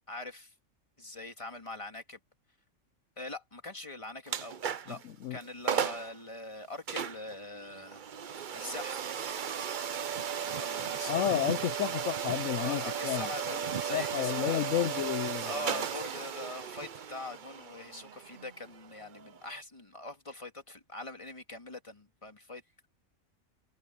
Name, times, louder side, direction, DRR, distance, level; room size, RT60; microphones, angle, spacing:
voice 1, 0.1-0.5 1.0-2.2 3.2-5.0 5.3-8.0 8.5-9.0 10.4-11.1 12.6-14.6 15.4-22.6, left 2 dB, 25° left, 2.5 m, -43 dB
sound 1, 4.3-5.0 5.4-5.5 5.7-6.1 6.9-19.6, right 8 dB, 45° right, 0.7 m, -35 dB
voice 2, 11.1-13.3 13.9-15.5, left 12 dB, 75° left, 1.0 m, -31 dB
omnidirectional pair, 1.4 m